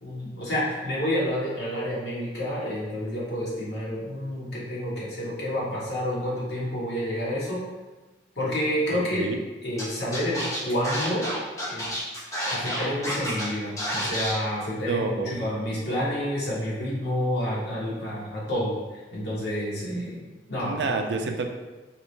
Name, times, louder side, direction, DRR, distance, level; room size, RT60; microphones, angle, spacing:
voice 1, 0.0-7.6 8.4-9.3 9.6-11.3 11.7-11.9 12.4-20.2 20.5-20.8, equal, 65° left, -7 dB, 1.3 m, -29 dB
voice 2, 8.9-9.4 14.9-15.5 20.6-21.5, right 3 dB, 75° right, 4 dB, 0.4 m, -29 dB
Scratching (performance technique), 9.8-9.9 10.1-13.4 13.8-14.3, equal, 20° left, 0.7 m, -30 dB
3.6 x 3.1 x 3.2 m, 1.2 s
head